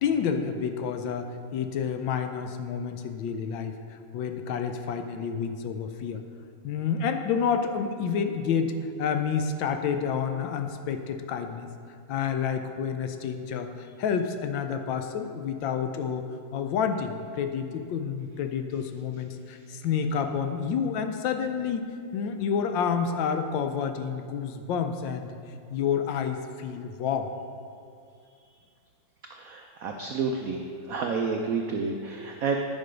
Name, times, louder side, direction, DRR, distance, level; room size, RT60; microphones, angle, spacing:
voice 1, 0.0-6.2 6.6-8.7 9.0-11.7 12.1-16.3 16.5-21.8 22.1-25.3 25.7-27.3, left 7 dB, 75° left, 7 dB, 1.3 m, -29 dB
voice 2, 29.3-30.6 30.9-32.6, right 5 dB, 85° right, 3 dB, 0.7 m, -30 dB
9.7 x 5.4 x 5.1 m, 2.4 s
omnidirectional pair, 2.2 m